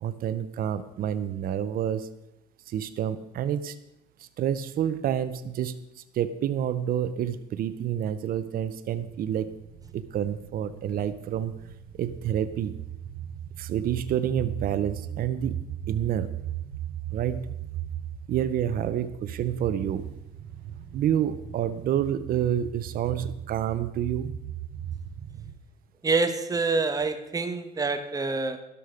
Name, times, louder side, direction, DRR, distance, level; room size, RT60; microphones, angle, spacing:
voice 1, 0.0-2.1 2.7-3.8 4.2-9.5 9.9-11.5 11.9-12.8 13.6-16.3 17.1-17.5 18.3-20.1 20.9-24.3, right 10 dB, 60° right, 11 dB, 0.8 m, -28 dB
sound 1, 9.0-25.5, right 10 dB, 80° right, 4.3 m, -38 dB
voice 2, 26.0-28.6, right 3 dB, 20° right, 8 dB, 1.3 m, -26 dB
12.5 x 11.5 x 5.1 m, 0.86 s
cardioid pair, 110°, 17 cm